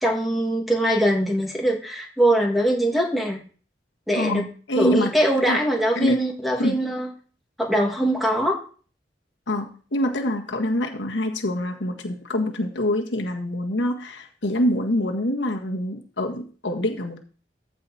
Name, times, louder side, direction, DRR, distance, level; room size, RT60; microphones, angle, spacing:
voice 1, 0.0-3.4 4.1-4.4 4.8-7.1 7.6-8.6, right 1 dB, ahead, 0 dB, 2.1 m, -22 dB
voice 2, 4.2-5.1 5.5-5.6 5.9-6.3 6.6-6.8 9.5-17.2, left 1 dB, 85° left, 2 dB, 1.6 m, -25 dB
14.0 x 5.2 x 4.2 m, 0.40 s
head